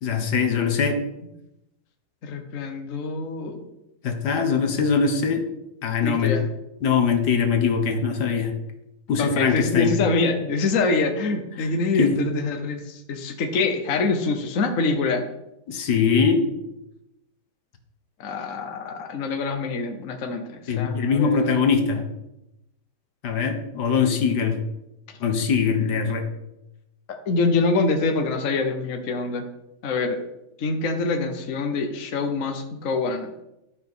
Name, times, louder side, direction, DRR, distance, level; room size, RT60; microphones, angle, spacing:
voice 1, 0.0-1.0 4.0-5.4 5.8-6.4 6.8-8.5 9.1-9.9 11.6-11.7 12.0-12.2 15.7-16.4 20.7-22.0 23.2-24.6 25.2-26.3, left 6 dB, 65° left, 5 dB, 1.8 m, -22 dB
voice 2, 2.2-3.6 6.0-6.4 9.2-15.2 18.2-21.6 27.3-29.4 29.8-30.2 30.6-33.3, left 3 dB, 50° left, 5 dB, 1.2 m, -25 dB
11.5 x 5.7 x 6.1 m, 0.91 s
omnidirectional pair, 1.9 m